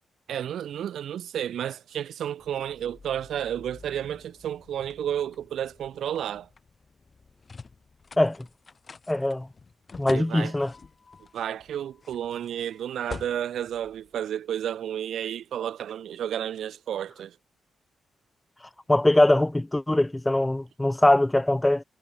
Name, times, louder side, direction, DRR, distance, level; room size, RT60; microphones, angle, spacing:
voice 1, 0.3-6.5 10.1-10.5 11.3-17.4, right 10 dB, 75° right, 1.7 m, -32 dB
sound 1, 2.4-14.7, left 4 dB, 40° left, 5.2 m, -48 dB
voice 2, 9.1-9.5 10.0-10.7 18.9-21.8, left 1 dB, 15° left, 0.6 m, -22 dB
cardioid pair, 60°, 0 cm